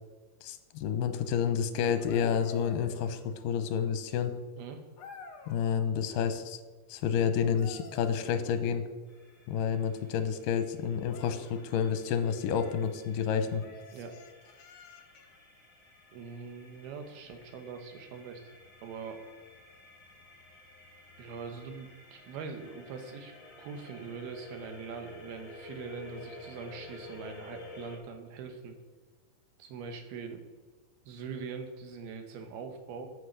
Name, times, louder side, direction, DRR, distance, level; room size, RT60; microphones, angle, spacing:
voice 1, 0.4-4.3 5.5-6.6 6.9-8.8 9.5-13.6, left 7 dB, 75° left, 9 dB, 2.3 m, -29 dB
sound 1, 1.8-3.8 5.0-5.9 7.3-9.0 11.0-11.7 12.5-12.9 13.6-15.4 17.2-17.4, left 5 dB, 55° left, 2.0 m, -51 dB
sound 2, 9.1-28.0, left 2 dB, 25° left, 1.9 m, -52 dB
voice 2, 16.1-18.4 18.8-19.2 21.2-23.3 23.6-28.8 29.6-30.4 31.1-33.1, right 5 dB, 90° right, 5 dB, 3.1 m, -42 dB
8.4 x 8.1 x 6.7 m, 1.4 s
omnidirectional pair, 4.3 m